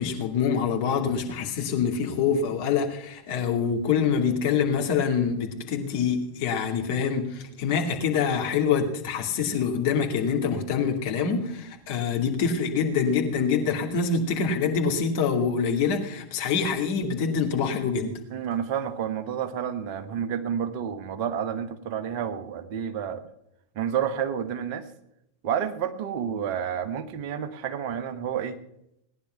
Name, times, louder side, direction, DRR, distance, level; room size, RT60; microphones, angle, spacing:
voice 1, 0.0-18.1, left 6 dB, 50° left, 2 dB, 2.6 m, -25 dB
voice 2, 18.3-23.3 23.7-24.9 25.4-28.6, right 8 dB, 45° right, 8 dB, 1.4 m, -30 dB
18.5 x 10.5 x 5.8 m, 0.80 s
figure-of-eight pair, 90°, 0 cm